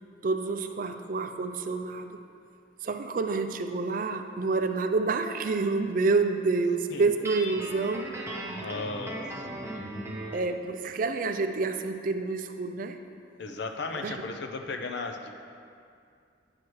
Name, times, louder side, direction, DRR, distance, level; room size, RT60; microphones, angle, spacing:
voice 1, 0.2-2.2 2.8-8.1 10.3-13.0 14.0-14.2, right 3 dB, 45° right, 7 dB, 0.4 m, -28 dB
Guitar, 7.2-10.5, right 1 dB, 15° right, 0.7 m, -38 dB
voice 2, 8.5-9.3 13.4-15.3, left 3 dB, 60° left, 5 dB, 0.5 m, -35 dB
9.5 x 6.3 x 3.0 m, 2.4 s
head